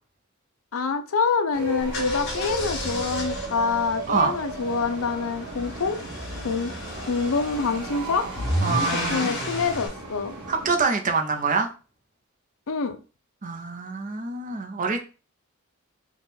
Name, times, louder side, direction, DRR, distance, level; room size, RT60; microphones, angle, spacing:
voice 1, 0.7-6.0 6.4-6.7 7.1-8.3 9.1-10.3 12.7-13.0, left 5 dB, 65° left, 7 dB, 0.6 m, -26 dB
sound 1, 1.5-10.8, right 1 dB, 90° right, 1.3 m, -35 dB
sound 2, 1.8-9.9, left 1 dB, 50° left, 1.4 m, -33 dB
voice 2, 8.6-9.3 10.5-11.7 13.4-15.0, right 4 dB, 35° right, 4 dB, 0.6 m, -25 dB
3.5 x 2.3 x 4.1 m, 0.33 s
head